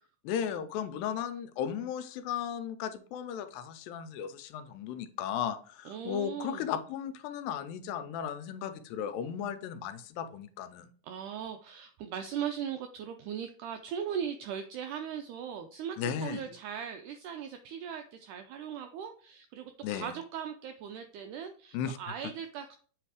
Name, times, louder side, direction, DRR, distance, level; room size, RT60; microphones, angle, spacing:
voice 1, 0.2-10.9 16.0-16.5 19.8-20.1 21.7-22.1, left 8 dB, 85° left, 10 dB, 2.3 m, -35 dB
voice 2, 5.8-6.6 11.0-16.0 16.2-22.8, right 8 dB, 85° right, 6 dB, 1.8 m, -39 dB
7.8 x 3.3 x 4.8 m, 0.44 s
omnidirectional pair, 4.1 m